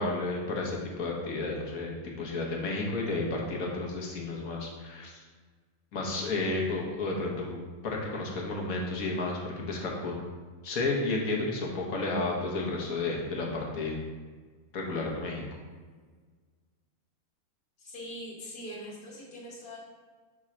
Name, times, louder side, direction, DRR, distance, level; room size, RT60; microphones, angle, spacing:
voice 1, 0.0-5.2 5.9-10.2 10.6-14.0 14.7-15.4, left 2 dB, 70° left, -1 dB, 1.5 m, -32 dB
voice 2, 17.8-19.8, equal, 85° left, -6 dB, 1.8 m, -42 dB
6.2 x 3.7 x 4.3 m, 1.5 s
omnidirectional pair, 1.6 m